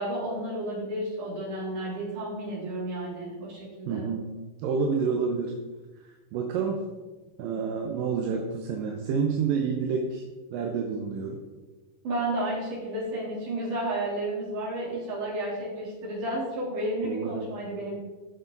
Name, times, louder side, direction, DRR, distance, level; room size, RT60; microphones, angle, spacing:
voice 1, 0.0-4.1 12.0-17.9, right 1 dB, 65° right, -6 dB, 4.8 m, -32 dB
voice 2, 3.9-4.2 4.6-5.5 6.3-6.8 7.4-10.2 10.5-11.4 17.0-17.5, right 5 dB, 85° right, 2 dB, 2.6 m, -28 dB
14.5 x 6.5 x 4.0 m, 1.3 s
omnidirectional pair, 3.9 m